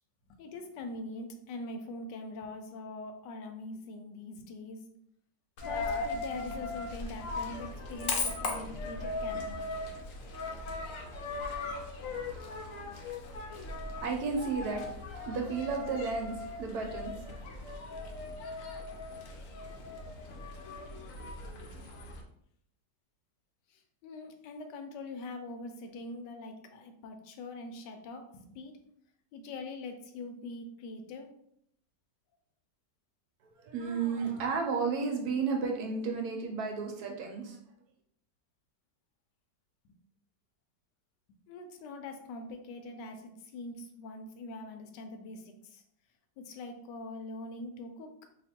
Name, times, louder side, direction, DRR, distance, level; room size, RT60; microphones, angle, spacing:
voice 1, 0.3-4.8 5.6-9.6 23.7-28.8 29.3-31.3 39.8-39.9 41.5-45.8 46.4-48.2, left 2 dB, 80° left, 6 dB, 1.2 m, -43 dB
Coin (dropping), 5.6-22.2, left 3 dB, 65° left, 0.8 m, -38 dB
voice 2, 12.1-12.6 13.3-17.2 33.4-37.6, right 5 dB, 70° right, 2 dB, 1.1 m, -34 dB
2.9 x 2.4 x 4.2 m, 0.71 s
omnidirectional pair, 1.9 m